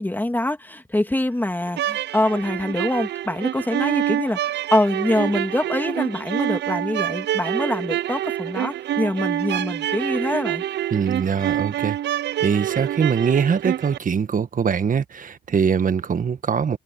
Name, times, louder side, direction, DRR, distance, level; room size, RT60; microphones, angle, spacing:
voice 1, 0.0-10.6, left 1 dB, 10° left, 2.1 m, -24 dB
sound 1, 1.7-14.0, right 12 dB, 60° right, 0.5 m, -26 dB
voice 2, 10.9-12.0 12.4-16.8, right 6 dB, 40° right, 1.6 m, -22 dB
cardioid pair, 90°, 20 cm